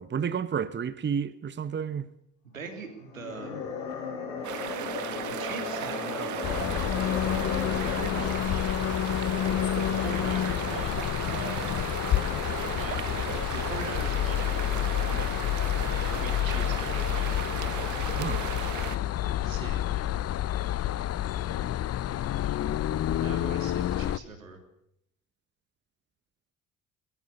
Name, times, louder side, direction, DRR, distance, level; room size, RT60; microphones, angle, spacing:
voice 1, 0.0-2.1 18.2-18.4, right 7 dB, 25° right, 1.2 m, -30 dB
voice 2, 2.4-3.6 5.3-8.8 9.9-11.8 12.6-15.3 16.1-17.4 19.4-19.8 23.1-24.6, right 4 dB, 85° right, 3.4 m, -41 dB
sound 1, 3.1-8.4, left 5 dB, 70° left, 6.8 m, -36 dB
sound 2, 4.4-19.0, right 10 dB, 50° right, 2.0 m, -36 dB
sound 3, 6.4-24.2, left 12 dB, 40° left, 0.8 m, -29 dB
22.0 x 21.5 x 6.7 m
figure-of-eight pair, 55°, 39 cm